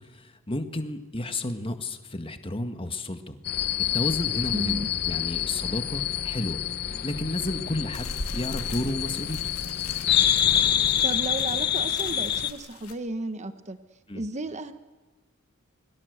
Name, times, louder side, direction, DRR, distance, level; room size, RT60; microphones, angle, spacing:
voice 1, 0.1-3.4 3.9-6.6 7.0-9.4 14.1-14.2, left 1 dB, 25° left, 8 dB, 1.7 m, -32 dB
sound 1, 3.4-12.5, left 10 dB, 50° left, 1.0 m, -27 dB
voice 2, 4.5-4.9 11.0-13.8 14.1-14.7, right 2 dB, 35° right, 10 dB, 1.2 m, -33 dB
sound 2, 7.9-12.9, left 3 dB, 85° left, 3.0 m, -40 dB
28.5 x 23.0 x 8.1 m, 1.2 s
head